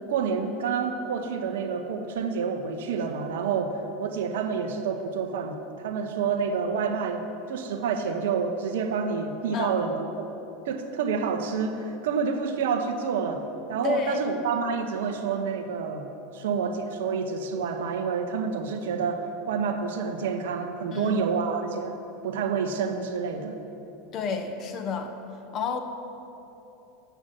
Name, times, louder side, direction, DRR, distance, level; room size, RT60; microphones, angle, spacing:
voice 1, 0.1-7.2 7.5-10.3 10.7-13.4 13.7-16.1 16.3-22.0 22.2-23.6, right 5 dB, 65° right, 6 dB, 0.8 m, -28 dB
voice 2, 13.8-14.3 20.9-21.1 24.1-25.1 25.5-25.8, left 5 dB, 40° left, 5 dB, 0.9 m, -29 dB
7.9 x 6.0 x 7.5 m, 3.0 s
figure-of-eight pair, 85°, 0 cm